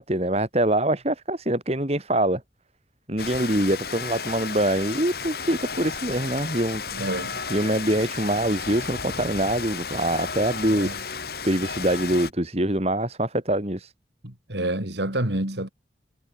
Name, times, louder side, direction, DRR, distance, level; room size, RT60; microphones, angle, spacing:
voice 1, 0.0-2.4 3.1-6.8 7.5-10.9 11.4-13.9, right 1 dB, 35° right, 3.4 m, -24 dB
Rain, 3.2-12.3, left 5 dB, 60° left, 2.9 m, -33 dB
voice 2, 6.9-7.3 10.7-11.0 14.2-15.7, right 1 dB, 75° right, 4.5 m, -28 dB
head